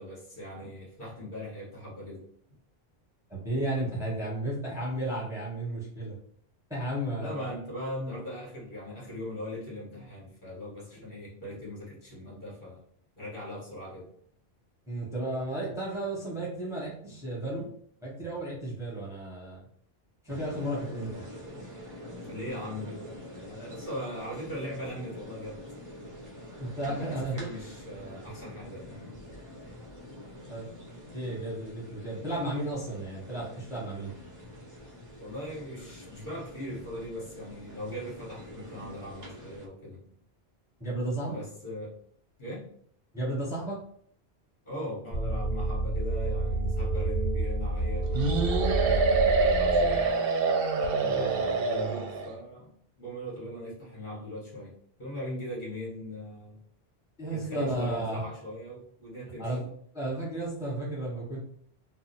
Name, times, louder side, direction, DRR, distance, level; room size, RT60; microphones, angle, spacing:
voice 1, 0.0-2.2 7.1-12.8 13.2-14.1 22.2-25.6 26.8-29.2 35.2-40.1 41.2-41.9 42.4-42.7 44.6-50.1 50.9-54.7 55.0-56.6 57.3-59.6, left 1 dB, 50° left, -6 dB, 1.4 m, -40 dB
voice 2, 3.3-6.2 6.7-7.6 14.9-17.7 18.0-19.6 20.2-21.2 26.6-27.4 30.5-30.7 31.1-34.1 40.8-41.4 43.1-43.8 48.8-49.0 57.2-58.2 59.4-59.6 59.9-61.4, right 1 dB, 5° right, -6 dB, 0.8 m, -33 dB
sound 1, 20.3-39.7, equal, 25° right, 0.5 m, -46 dB
sound 2, 45.1-50.1, right 2 dB, 20° left, 1.2 m, -29 dB
sound 3, 48.1-52.3, right 4 dB, 65° right, 0.7 m, -25 dB
2.9 x 2.0 x 3.9 m, 0.63 s
omnidirectional pair, 1.1 m